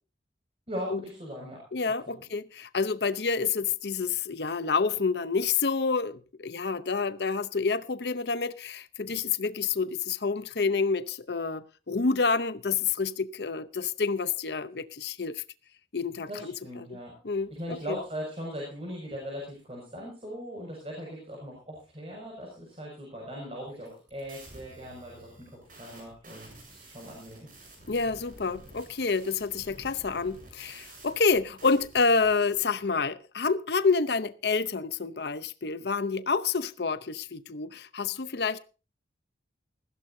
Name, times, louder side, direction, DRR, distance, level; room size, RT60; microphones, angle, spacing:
voice 1, 0.7-1.6 2.1-2.2 16.3-27.5, equal, 35° right, 6.1 m, -39 dB
voice 2, 1.7-15.4 15.9-16.9 17.2-18.0 27.9-38.6, left 4 dB, 65° left, 0.8 m, -28 dB
sound 1, 23.7-32.7, right 2 dB, 50° right, 8.0 m, -51 dB
20.5 x 15.0 x 2.7 m
head